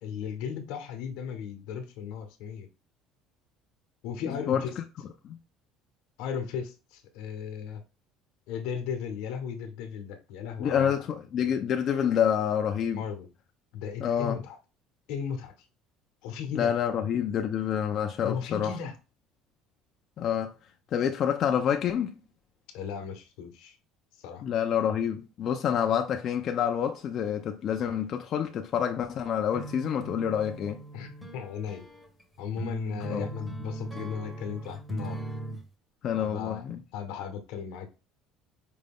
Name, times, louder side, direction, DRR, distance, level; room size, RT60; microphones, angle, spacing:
voice 1, 0.0-2.7 4.0-4.8 6.2-7.8 8.5-10.9 12.9-13.3 13.7-14.6 15.1-15.5 16.2-16.7 18.2-18.9 22.7-23.8 24.2-24.4 30.9-31.9 32.4-35.2 36.2-36.6 36.9-37.9, left 7 dB, 75° left, 0.9 m, -36 dB
voice 2, 4.4-4.8 5.2-5.4 10.6-13.0 14.0-14.4 16.5-18.8 20.2-20.5 20.9-22.2 24.4-30.8 33.1-33.3 36.0-36.8, left 8 dB, 40° left, 0.4 m, -27 dB
sound 1, 29.5-35.7, right 2 dB, ahead, 0.7 m, -39 dB
5.0 x 2.2 x 3.5 m
cardioid pair, 160°, 0 cm